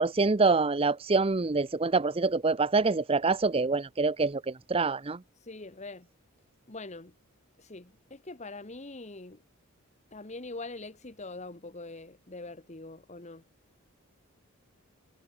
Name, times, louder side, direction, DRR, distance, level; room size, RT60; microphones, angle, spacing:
voice 1, 0.0-5.2, right 3 dB, 25° right, 0.6 m, -26 dB
voice 2, 5.4-6.1 6.7-7.1 7.6-9.4 10.1-13.4, left 2 dB, 30° left, 1.4 m, -43 dB
head